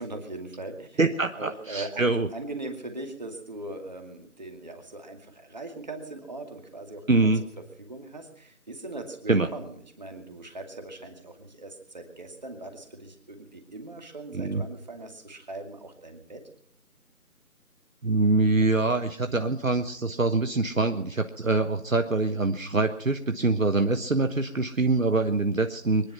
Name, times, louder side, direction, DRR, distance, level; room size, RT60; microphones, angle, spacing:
voice 1, 0.0-1.0 1.4-7.3 7.8-16.4, right 2 dB, 30° right, 5 dB, 2.4 m, -40 dB
voice 2, 1.0-2.3 7.1-7.4 9.3-9.5 14.3-14.6 18.0-26.1, right 3 dB, 60° right, 8 dB, 1.3 m, -24 dB
24.0 x 10.5 x 5.8 m, 0.66 s
figure-of-eight pair, 170°, 45 cm